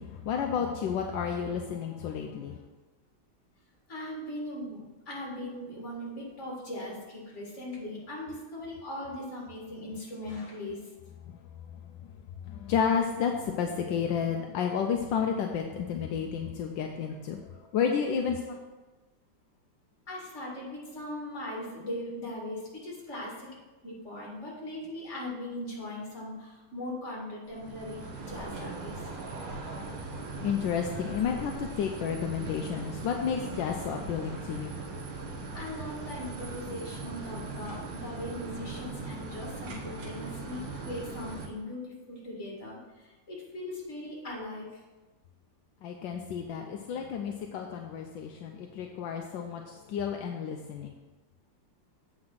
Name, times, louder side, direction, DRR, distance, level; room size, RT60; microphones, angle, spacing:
voice 1, 0.0-2.6 12.4-17.5 17.7-18.6 30.4-34.8 45.8-50.9, left 7 dB, 80° left, 3 dB, 1.3 m, -31 dB
voice 2, 3.9-10.9 20.1-23.5 23.8-29.1 35.5-44.8, left 1 dB, 35° left, -4 dB, 2.5 m, -39 dB
sound 1, 27.5-41.5, right 3 dB, 80° right, 1.7 m, -39 dB
7.9 x 4.9 x 5.7 m, 1.2 s
omnidirectional pair, 2.1 m